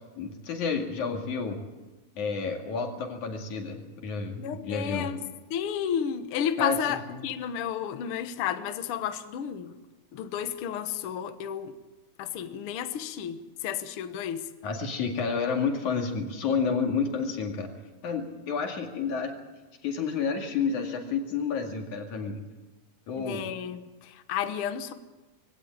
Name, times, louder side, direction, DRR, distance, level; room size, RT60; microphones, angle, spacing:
voice 1, 0.2-1.6 2.2-5.1 6.6-6.8 7.1-7.2 14.6-17.7 18.0-19.3 19.8-22.4 23.1-23.4, left 5 dB, 75° left, 3.6 m, -30 dB
voice 2, 4.4-5.2 5.5-9.7 10.1-11.8 12.2-14.5 23.2-24.9, left 9 dB, 55° left, 1.7 m, -32 dB
21.5 x 17.0 x 8.7 m
omnidirectional pair, 3.5 m